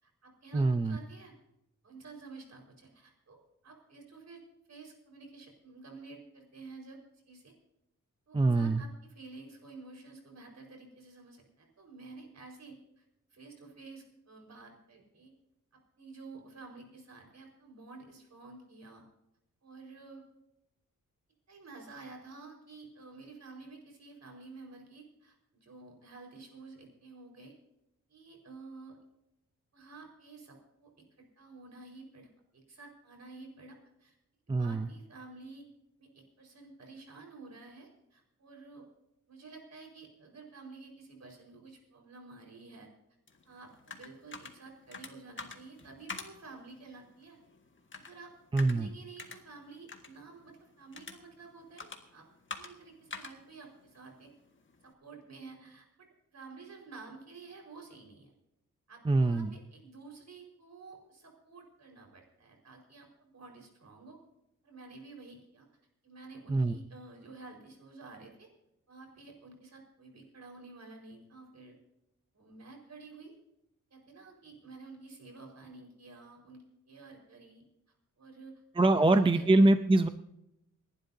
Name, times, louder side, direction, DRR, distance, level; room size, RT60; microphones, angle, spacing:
voice 1, 0.0-1.3 1.8-3.4 3.6-4.4 4.7-7.5 8.3-13.0 13.3-15.3 15.7-19.0 19.6-20.3 21.5-27.5 28.1-29.0 29.7-34.1 34.5-35.6 36.0-38.9 39.3-42.9 43.4-47.4 47.9-48.3 48.6-52.3 52.5-54.3 54.8-58.3 58.9-64.2 64.6-65.7 66.0-68.5 68.9-71.8 72.3-73.4 73.9-77.6 78.2-78.6 78.9-79.5, right 3 dB, 60° right, 1 dB, 4.8 m, -51 dB
voice 2, 0.5-1.0 8.3-8.8 34.5-34.9 48.5-48.9 59.0-59.5 66.5-66.7 78.8-80.1, right 2 dB, 15° right, 9 dB, 0.5 m, -24 dB
sound 1, 43.3-54.9, left 4 dB, 40° left, 1.7 m, -49 dB
28.5 x 12.0 x 2.7 m, 0.85 s
wide cardioid pair, 155°, 31 cm